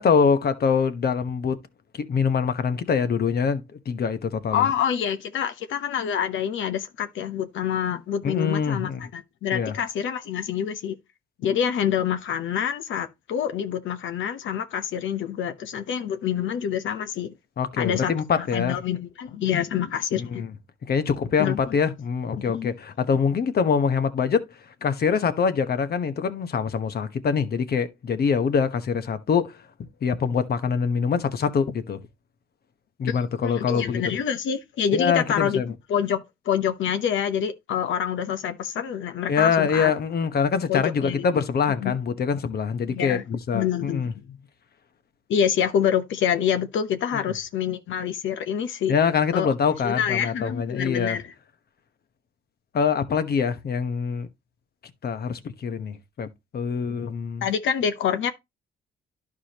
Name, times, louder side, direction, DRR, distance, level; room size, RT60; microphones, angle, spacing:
voice 1, 0.0-1.6 1.9-4.7 8.2-9.0 9.5-9.7 17.6-18.8 20.1-20.5 20.9-24.4 24.8-29.6 30.0-32.0 33.0-34.2 34.9-35.7 39.3-44.1 48.9-51.2 52.7-54.3 55.0-56.3 56.5-57.4, left 6 dB, 50° left, 1.1 m, -24 dB
voice 2, 4.5-11.0 11.4-17.3 17.8-20.5 21.4-21.6 22.4-22.7 33.1-33.2 33.4-35.6 35.9-39.9 40.7-41.4 41.8-41.9 42.9-43.2 43.5-44.4 45.3-48.9 49.3-49.5 49.8-51.3 57.4-58.3, left 8 dB, 75° left, 1.0 m, -26 dB
11.5 x 4.9 x 2.9 m
cardioid pair, 90°, 20 cm